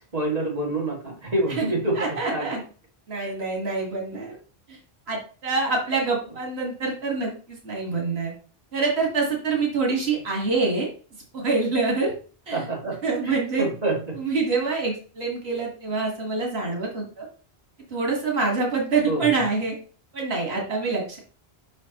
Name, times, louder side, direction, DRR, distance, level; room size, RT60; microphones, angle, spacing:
voice 1, 0.1-2.6 3.2-3.3 12.5-14.2 19.0-19.3, right 2 dB, 40° right, -3 dB, 2.1 m, -27 dB
voice 2, 2.0-2.6 3.1-4.4 4.7-4.8 5.1-8.3 8.7-10.9 11.3-12.1 12.5-12.6 13.0-13.6 14.2-17.3 17.9-19.8 20.1-21.2, right 4 dB, 90° right, 0 dB, 1.8 m, -26 dB
6.3 x 5.7 x 2.9 m, 0.39 s
omnidirectional pair, 1.0 m